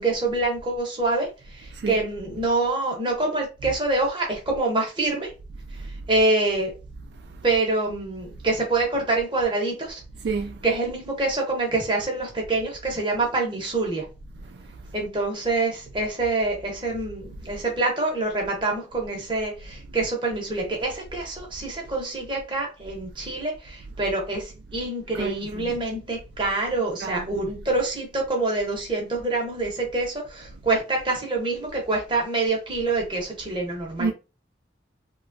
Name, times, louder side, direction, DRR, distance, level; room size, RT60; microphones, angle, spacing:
voice 1, 0.0-5.3 6.1-6.7 7.4-10.0 10.6-14.1 14.9-34.1, right 2 dB, 25° right, 0.8 m, -26 dB
voice 2, 10.2-10.6 14.5-14.6 25.2-25.7 27.0-27.5 34.0-34.1, right 4 dB, 65° right, 0.3 m, -29 dB
3.0 x 2.2 x 2.5 m
head